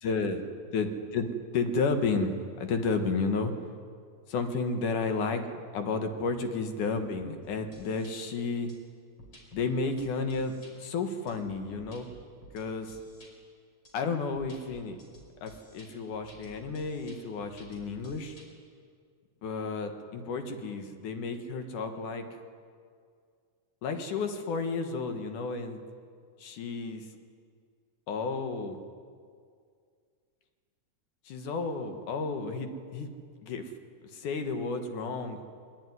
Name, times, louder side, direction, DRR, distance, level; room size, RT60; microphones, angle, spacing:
voice 1, 0.0-0.4 0.7-3.5 4.3-5.5 5.7-8.7 9.5-12.1 12.5-13.0 13.9-15.0 15.4-18.4 19.4-22.3 23.8-25.8 26.4-27.1 28.1-28.8 31.3-33.1 33.4-33.7 34.0-35.4, left 4 dB, 80° left, 6 dB, 3.1 m, -32 dB
sound 1, 7.4-8.1 8.7-8.8 9.2-9.6 10.0-10.7 11.3-13.3 13.8-13.9 14.3-18.5, equal, 40° left, 5.6 m, -53 dB
22.5 x 22.0 x 9.7 m, 2.2 s
omnidirectional pair, 3.5 m